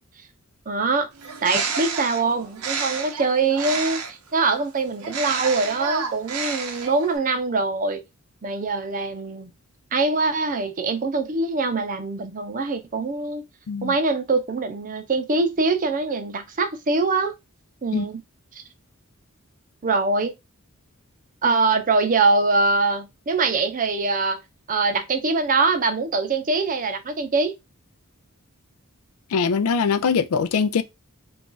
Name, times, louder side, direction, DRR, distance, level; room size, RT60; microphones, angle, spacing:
voice 1, 0.7-1.1 1.4-8.0 8.4-9.5 9.9-13.4 13.8-17.3 17.8-18.2 19.8-20.3 21.4-24.4 24.7-27.6, right 3 dB, 40° right, 0.5 m, -23 dB
Bird, 1.2-4.3 5.0-7.2, right 5 dB, 85° right, 0.7 m, -30 dB
voice 2, 29.3-30.8, left 5 dB, 80° left, 0.4 m, -22 dB
2.5 x 2.3 x 3.8 m
head